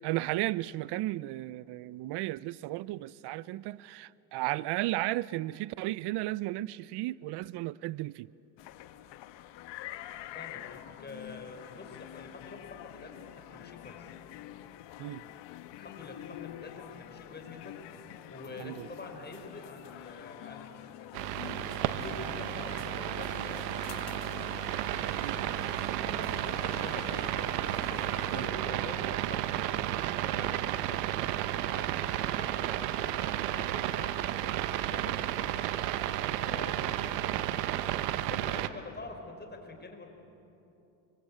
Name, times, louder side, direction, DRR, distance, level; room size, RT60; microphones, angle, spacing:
voice 1, 0.0-8.3 15.0-15.2 18.6-18.9 25.0-25.4 28.3-28.5, right 17 dB, 60° right, 0.7 m, -34 dB
sound 1, 8.6-28.5, left 13 dB, 65° left, 1.3 m, -47 dB
voice 2, 10.3-14.1 15.7-21.1 21.8-24.1 26.0-27.5 27.8-29.6 30.2-31.1 31.4-35.8 36.4-37.8 38.2-40.1, left 3 dB, 20° left, 4.8 m, -47 dB
sound 2, 21.1-38.7, right 13 dB, 90° right, 1.1 m, -32 dB
26.0 x 24.5 x 8.7 m
supercardioid pair, 100°, 47 cm